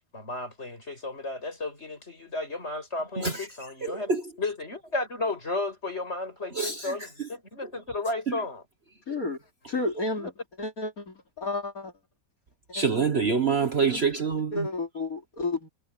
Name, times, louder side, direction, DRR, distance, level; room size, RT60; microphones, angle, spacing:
voice 1, 0.1-4.1 4.4-8.6 10.1-10.3, left 2 dB, 40° left, 7.2 m, -33 dB
voice 2, 3.2-3.5 3.8-4.3 6.5-7.3 7.6-7.7 8.3-8.4 12.7-14.7, right 5 dB, 40° right, 1.4 m, -27 dB
voice 3, 9.1-9.4 9.7-10.3 10.6-11.9 12.7-13.1 13.6-14.0 14.5-15.7, left 2 dB, 55° left, 3.6 m, -32 dB
omnidirectional pair, 1.8 m